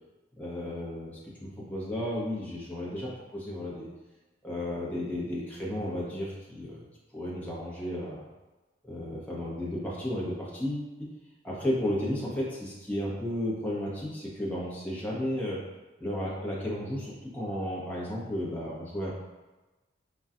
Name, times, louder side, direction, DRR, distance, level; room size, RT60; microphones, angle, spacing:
voice 1, 0.4-3.9 4.4-6.8 7.1-8.2 8.8-11.1 11.4-15.6 16.0-19.1, left 1 dB, 10° left, -6 dB, 0.8 m, -33 dB
5.4 x 2.3 x 2.4 m, 1.2 s
head